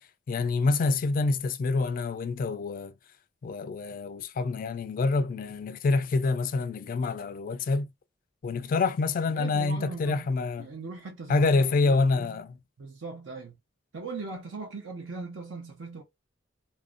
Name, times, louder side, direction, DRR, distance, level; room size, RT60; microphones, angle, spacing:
voice 1, 0.3-2.9 3.4-7.9 8.4-10.7 11.3-12.6, left 3 dB, 45° left, 0.3 m, -27 dB
voice 2, 9.3-10.3 10.6-12.4 12.8-13.6 13.9-16.0, right 3 dB, 75° right, 0.6 m, -40 dB
2.5 x 2.1 x 2.4 m
head